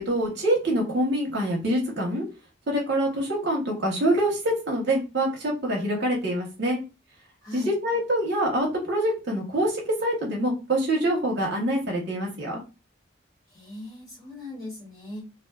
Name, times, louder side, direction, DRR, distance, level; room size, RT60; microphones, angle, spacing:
voice 1, 0.0-2.2 2.7-6.8 7.5-12.6, right 1 dB, 55° right, -1 dB, 0.8 m, -25 dB
voice 2, 7.4-7.7 13.5-15.2, left 2 dB, 15° left, -6 dB, 1.3 m, -39 dB
2.4 x 2.2 x 2.2 m, 0.29 s
head